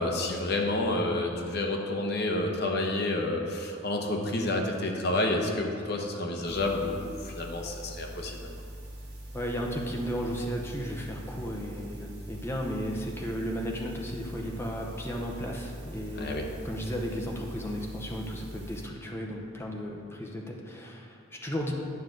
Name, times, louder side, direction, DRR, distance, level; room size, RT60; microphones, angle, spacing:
voice 1, 0.0-8.5 16.2-16.4, left 2 dB, 50° left, 1 dB, 0.9 m, -29 dB
sound 1, 6.4-18.8, right 1 dB, 50° right, 1.3 m, -43 dB
voice 2, 9.3-16.3 16.6-21.7, equal, 10° left, 0 dB, 0.7 m, -34 dB
9.3 x 6.1 x 3.9 m, 2.5 s
head